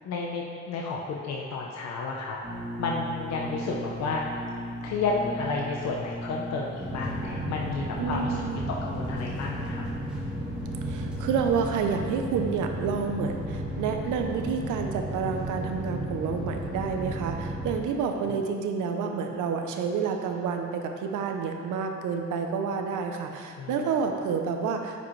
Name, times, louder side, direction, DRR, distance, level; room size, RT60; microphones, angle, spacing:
voice 1, 0.0-2.4 2.8-4.2 4.8-9.8 23.6-23.9, left 4 dB, 65° left, -2 dB, 0.8 m, -31 dB
sound 1, 2.4-13.3, equal, 25° right, 1.7 m, -39 dB
sound 2, 6.8-17.7, right 1 dB, 5° right, 1.6 m, -34 dB
voice 2, 8.0-8.6 10.8-25.0, right 6 dB, 85° right, 4 dB, 0.7 m, -29 dB
9.3 x 5.0 x 3.2 m, 2.2 s
cardioid pair, 90°, 30 cm